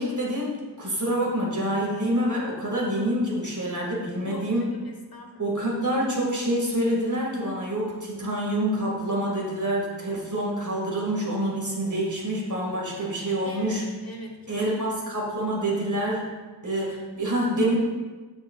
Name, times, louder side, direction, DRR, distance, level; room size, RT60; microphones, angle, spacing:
voice 1, 0.0-4.6 5.4-13.8 14.5-16.3 16.6-17.7, right 1 dB, 45° right, -3 dB, 2.0 m, -27 dB
voice 2, 4.2-5.6 13.4-14.9, left 1 dB, 55° left, 1 dB, 1.3 m, -41 dB
9.3 x 7.1 x 2.4 m, 1.3 s
wide cardioid pair, 50°, 43 cm